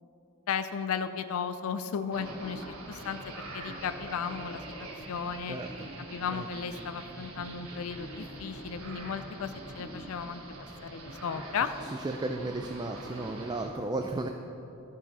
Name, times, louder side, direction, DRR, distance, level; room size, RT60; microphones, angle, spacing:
voice 1, 0.5-4.6 5.1-5.6 6.0-10.4 10.8-11.7, left 6 dB, 70° left, 11 dB, 0.4 m, -35 dB
sound 1, 2.1-13.7, right 2 dB, 70° right, 1.4 m, -44 dB
voice 2, 5.5-5.9 6.3-6.5 12.0-14.3, right 2 dB, 20° right, 4 dB, 0.3 m, -34 dB
13.0 x 4.8 x 5.5 m, 2.9 s
head